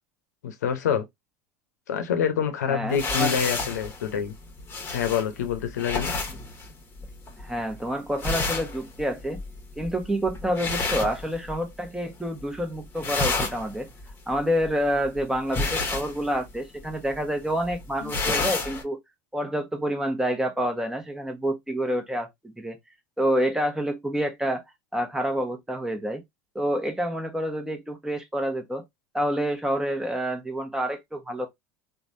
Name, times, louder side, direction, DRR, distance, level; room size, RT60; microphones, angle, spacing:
voice 1, 0.4-1.1 1.9-4.3 4.9-6.1 18.0-18.1, left 8 dB, 90° left, 0.7 m, -26 dB
voice 2, 2.7-3.3 7.4-9.4 9.8-13.9 14.3-19.0 19.3-22.8 23.2-24.6 24.9-26.2 26.5-28.8 29.1-31.5, equal, 5° right, 0.9 m, -28 dB
sound 1, 2.9-11.9 12.2-12.6 12.9-18.8, left 3 dB, 25° left, 1.1 m, -31 dB
3.2 x 2.2 x 2.6 m
hypercardioid pair, 95°, 9 cm